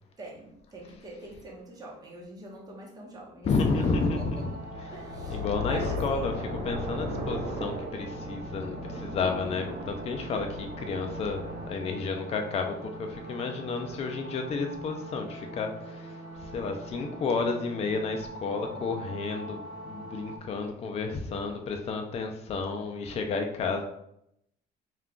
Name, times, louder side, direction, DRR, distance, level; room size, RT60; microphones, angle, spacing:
voice 1, 0.2-3.9 4.2-4.5 4.9-6.3, right 2 dB, 20° right, -3 dB, 0.9 m, -44 dB
voice 2, 3.5-4.5 5.3-23.8, left 4 dB, 35° left, 4 dB, 0.4 m, -31 dB
sound 1, 3.7-20.4, right 2 dB, 70° right, 0.8 m, -43 dB
sound 2, 4.5-11.7, left 1 dB, 45° right, 1.0 m, -36 dB
2.3 x 2.3 x 3.6 m, 0.76 s
cardioid pair, 110°, 17 cm